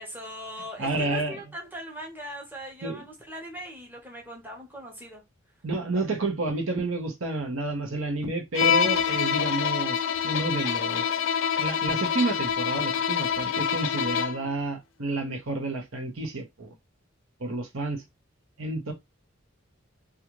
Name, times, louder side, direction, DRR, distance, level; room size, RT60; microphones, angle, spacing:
voice 1, 0.0-5.2, right 1 dB, 10° right, 0.9 m, -40 dB
voice 2, 0.8-1.4 2.8-3.0 5.6-11.1 11.6-16.7 17.4-18.0 18.6-18.9, right 2 dB, 85° right, 0.9 m, -30 dB
Bowed string instrument, 8.6-14.5, left 8 dB, 70° left, 0.4 m, -26 dB
2.5 x 2.4 x 3.0 m
head